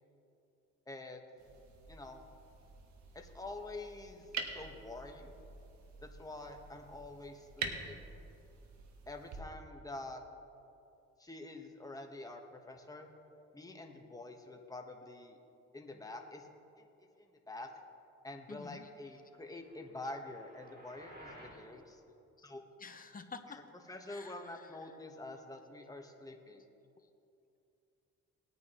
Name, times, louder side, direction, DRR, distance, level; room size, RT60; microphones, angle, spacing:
voice 1, 0.9-1.2 1.9-2.3 3.1-5.4 6.0-8.0 9.1-10.2 11.2-13.1 13.5-15.4 15.7-16.5 16.8-16.9 17.2-17.7 18.2-22.0 22.4-22.6 23.5-23.6 23.9-26.7, left 2 dB, 10° left, 3 dB, 1.3 m, -47 dB
sound 1, 1.4-9.4, right 5 dB, 70° right, 1.4 m, -46 dB
voice 2, 18.5-18.9 22.4-22.5 22.8-23.6 24.1-24.6, left 4 dB, 30° left, 7 dB, 0.9 m, -49 dB
sound 2, 19.4-21.7, right 1 dB, 30° right, 2.8 m, -56 dB
19.5 x 9.5 x 3.1 m, 2.7 s
cardioid pair, 90°, 30 cm